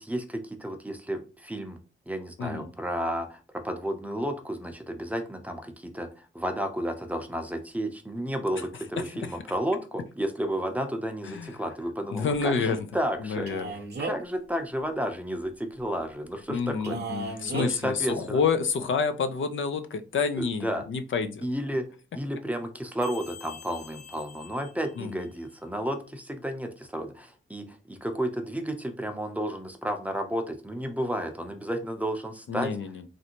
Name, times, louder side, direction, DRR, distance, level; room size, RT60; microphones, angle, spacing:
voice 1, 0.0-1.8 2.1-13.5 14.0-17.0 17.2-18.4 20.4-20.8 21.4-21.8 22.1-32.7, equal, 5° right, 5 dB, 0.5 m, -32 dB
voice 2, 2.4-2.7 9.2-9.4 11.2-11.6 12.1-12.9 13.2-13.7 16.5-21.5 25.0-25.2 32.5-33.1, left 5 dB, 70° left, 9 dB, 0.4 m, -29 dB
Male speech man speaking, 13.5-14.3 16.8-17.7, right 3 dB, 55° right, 0.7 m, -34 dB
sound 1, 23.0-25.6, left 6 dB, 55° left, 0.8 m, -48 dB
3.2 x 2.6 x 2.8 m, 0.33 s
wide cardioid pair, 100°, 21 cm